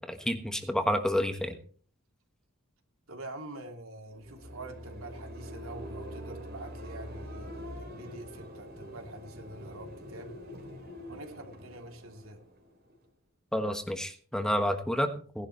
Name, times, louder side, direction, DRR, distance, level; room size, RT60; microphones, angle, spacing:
voice 1, 0.1-1.6 13.5-15.5, equal, 5° left, 6 dB, 1.2 m, -29 dB
voice 2, 3.1-10.3 11.1-12.4, right 2 dB, 80° right, 3 dB, 3.2 m, -45 dB
sound 1, 4.0-13.1, equal, 50° right, 3.3 m, -44 dB
18.0 x 11.5 x 3.3 m, 0.43 s
head